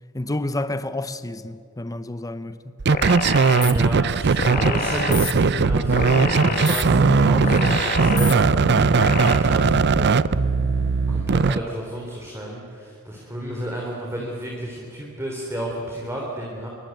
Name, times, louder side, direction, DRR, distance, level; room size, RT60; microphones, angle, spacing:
voice 1, 0.1-2.7, left 2 dB, 15° left, 0.7 m, -29 dB
sound 1, 2.8-11.6, right 4 dB, 50° right, 0.6 m, -19 dB
sound 2, 2.9-3.7 4.4-5.3 5.9-6.8 7.4-8.3 9.0-9.4, left 5 dB, 40° left, 1.8 m, -27 dB
voice 2, 3.6-10.4 11.1-16.7, equal, 10° right, 3.6 m, -31 dB
sound 3, 5.5-11.2, equal, 70° left, 3.9 m, -35 dB
25.5 x 23.5 x 9.1 m
head